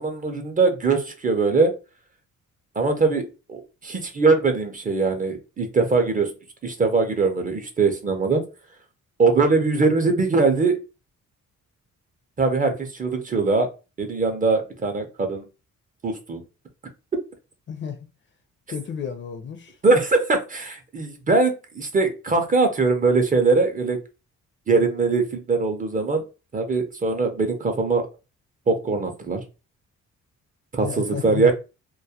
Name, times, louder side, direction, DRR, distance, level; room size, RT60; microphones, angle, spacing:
voice 1, 0.0-1.8 2.8-6.3 6.6-8.4 9.2-10.8 12.4-13.7 14.0-15.4 16.0-16.4 19.8-24.0 24.7-26.2 26.5-28.1 28.7-29.4 30.7-31.5, right 3 dB, 25° right, 0.5 m, -21 dB
voice 2, 18.7-19.7 30.8-31.5, left 7 dB, 40° left, 0.5 m, -32 dB
2.2 x 2.1 x 2.7 m
cardioid pair, 90°, 30 cm